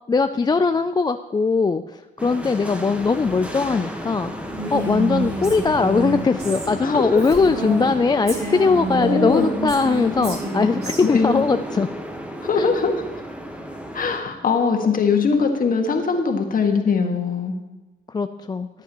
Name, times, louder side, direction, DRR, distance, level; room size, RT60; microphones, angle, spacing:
voice 1, 0.1-4.3 4.7-11.9 12.5-12.7 18.1-18.7, left 4 dB, 20° left, 9 dB, 0.4 m, -20 dB
sound 1, 2.2-14.2, equal, 5° right, 1.4 m, -33 dB
Female speech woman speaking, 4.5-8.0 8.3-11.0, right 2 dB, 55° right, 3.6 m, -28 dB
voice 2, 6.8-7.2 9.0-9.5 11.0-11.4 12.4-13.0 13.9-17.5, left 5 dB, 45° left, 3 dB, 1.7 m, -21 dB
14.5 x 9.7 x 3.0 m, 1.1 s
cardioid pair, 90°, 20 cm